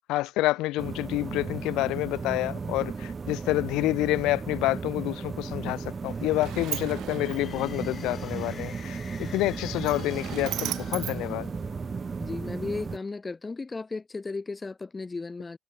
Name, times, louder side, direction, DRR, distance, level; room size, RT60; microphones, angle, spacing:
voice 1, 0.1-11.5, left 18 dB, 80° left, 0.3 m, -28 dB
sound 1, 0.8-13.0, right 5 dB, 30° right, 1.2 m, -35 dB
Sliding door, 5.8-12.2, right 14 dB, 70° right, 1.7 m, -39 dB
sound 2, 5.9-12.0, left 7 dB, 40° left, 3.8 m, -49 dB
voice 2, 12.2-15.6, left 3 dB, 20° left, 1.2 m, -35 dB
cardioid pair, 110°, 0 cm